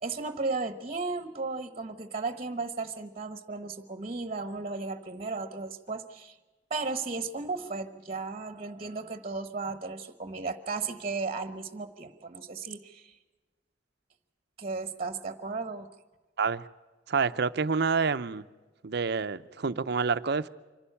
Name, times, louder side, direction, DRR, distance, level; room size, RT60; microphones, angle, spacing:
voice 1, 0.0-6.4 6.7-13.1 14.6-15.9, right 3 dB, 35° right, 10 dB, 1.1 m, -35 dB
voice 2, 17.1-18.4 18.8-20.5, right 5 dB, 60° right, 13 dB, 0.6 m, -28 dB
25.5 x 11.5 x 9.9 m, 1.3 s
head